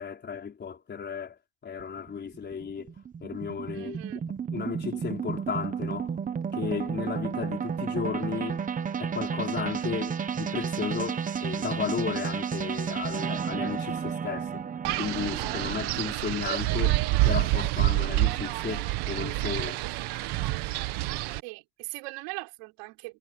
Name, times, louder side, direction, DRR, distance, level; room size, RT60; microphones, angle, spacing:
voice 1, 0.0-2.9 3.2-4.0 4.5-6.1 6.5-8.6 9.0-14.6 15.0-19.8, left 6 dB, 20° left, 4.7 m, -34 dB
sound 1, 1.8-16.0, right 7 dB, 15° right, 0.8 m, -32 dB
voice 2, 3.7-4.3 21.4-23.2, right 25 dB, 80° right, 6.1 m, -40 dB
Wind, 14.8-21.4, right 17 dB, 55° right, 1.5 m, -27 dB
cardioid pair, 175°, 48 cm